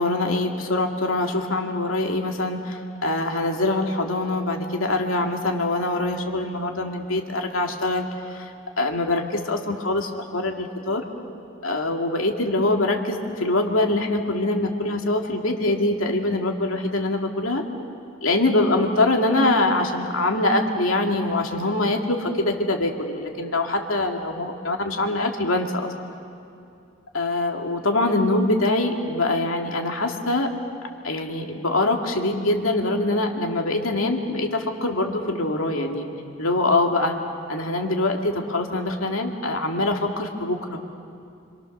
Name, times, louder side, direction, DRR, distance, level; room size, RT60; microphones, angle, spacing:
voice 1, 0.0-8.5 8.8-11.0 11.6-17.6 18.2-25.9 27.1-30.5 31.0-36.1 36.4-37.1 37.5-40.8, left 2 dB, 85° left, 2 dB, 2.5 m, -24 dB
28.0 x 26.0 x 6.7 m, 2.5 s
head